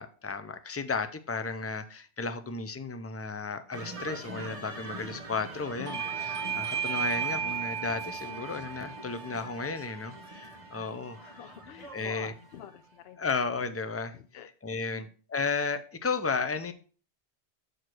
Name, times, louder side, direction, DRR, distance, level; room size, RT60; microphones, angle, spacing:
voice 1, 0.0-11.2 11.9-12.3 13.2-14.2 14.6-16.7, left 4 dB, 20° left, 10 dB, 0.4 m, -34 dB
sound 1, 3.7-12.7, right 1 dB, 35° right, 1.2 m, -44 dB
Bell / Doorbell, 5.9-11.0, right 8 dB, 50° right, 0.9 m, -35 dB
voice 2, 6.6-7.0 11.1-13.2 13.7-13.8 14.1-14.5 14.9-15.1, left 10 dB, 70° left, 11 dB, 0.8 m, -48 dB
6.5 x 4.7 x 6.0 m, 0.39 s
omnidirectional pair, 1.1 m